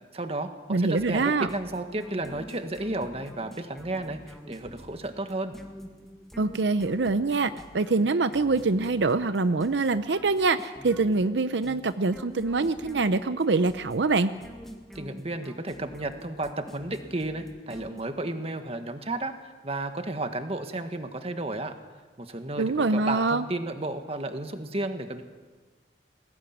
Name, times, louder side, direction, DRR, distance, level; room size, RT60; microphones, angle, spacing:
voice 1, 0.1-5.5 14.9-19.3 19.6-21.8 22.2-25.2, right 2 dB, 35° right, 7 dB, 1.6 m, -33 dB
voice 2, 0.7-1.5 6.4-14.3 22.6-23.4, right 3 dB, 80° right, 12 dB, 0.7 m, -24 dB
sound 1, 1.0-18.5, equal, ahead, 1.9 m, -46 dB
21.0 x 17.5 x 9.4 m, 1.4 s
head